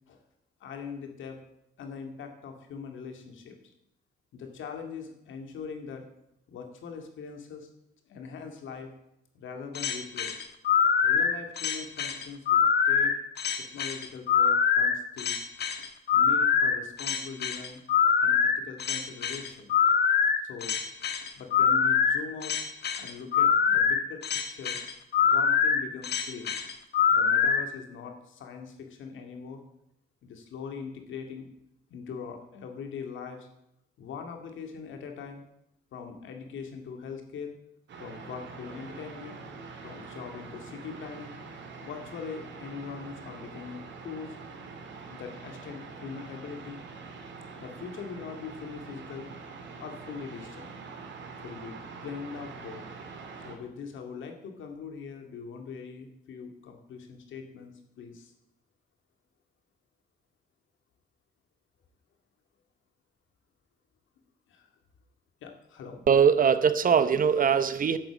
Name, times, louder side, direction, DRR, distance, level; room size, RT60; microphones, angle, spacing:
voice 1, 0.6-1.4 1.8-3.6 4.3-6.0 6.5-7.7 8.1-8.9 9.3-10.4 11.0-13.1 13.6-15.4 16.1-17.8 18.2-19.7 20.4-20.9 21.3-22.6 23.0-24.8 25.2-26.6 27.1-29.6 30.2-31.5 31.9-33.5 34.0-35.4 35.9-37.5 38.0-39.4 39.8-41.4 41.8-44.4 45.1-46.8 47.6-49.3 49.8-50.7 51.4-52.8 53.4-58.3 64.5-64.7 65.4-66.1 67.0-67.1, left 6 dB, 75° left, 4 dB, 2.2 m, -41 dB
sound 1, 9.7-27.6, left 6 dB, 55° left, 1.4 m, -24 dB
sound 2, 37.9-53.6, right 4 dB, 65° right, 2.4 m, -44 dB
voice 2, 66.1-68.0, right 7 dB, 45° right, 13 dB, 0.8 m, -21 dB
10.5 x 8.1 x 7.2 m, 0.81 s
cardioid pair, 90°, 20 cm